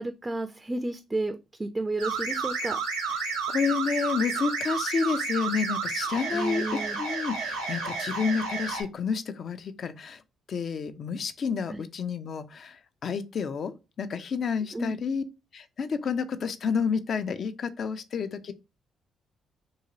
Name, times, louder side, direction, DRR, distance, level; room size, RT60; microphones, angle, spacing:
voice 1, 0.0-2.8 6.3-7.0 11.7-11.8 14.7-14.9, right 2 dB, 25° right, 0.3 m, -32 dB
sound 1, 2.0-8.8, right 4 dB, 90° right, 0.8 m, -31 dB
voice 2, 3.2-10.2 10.5-15.2 15.5-18.5, left 5 dB, 55° left, 0.4 m, -30 dB
2.8 x 2.7 x 2.7 m
hypercardioid pair, 50°, 0 cm